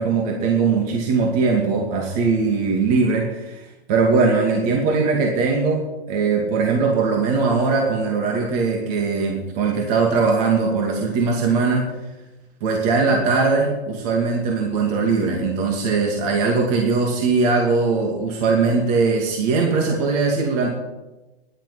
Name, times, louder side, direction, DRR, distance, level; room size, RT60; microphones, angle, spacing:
voice 1, 0.0-11.9 12.6-20.7, right 4 dB, 35° right, 0 dB, 2.5 m, -20 dB
11.0 x 9.1 x 9.6 m, 1.1 s
hypercardioid pair, 150°, 32 cm